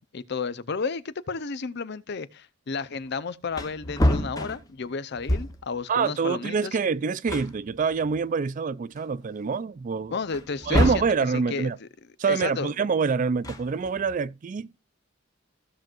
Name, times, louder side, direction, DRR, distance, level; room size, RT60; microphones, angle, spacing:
voice 1, 0.0-6.8 10.1-11.9 12.3-12.7, left 4 dB, 55° left, 0.6 m, -32 dB
Wood, 3.1-3.2 3.5-5.7 6.8-6.9 7.3-8.5 9.0-9.1 10.3-11.2 13.2-14.2, left 1 dB, 20° left, 0.9 m, -27 dB
voice 2, 5.9-10.2 10.7-11.8 12.2-14.8, right 5 dB, 40° right, 0.3 m, -26 dB
15.5 x 6.1 x 2.5 m
head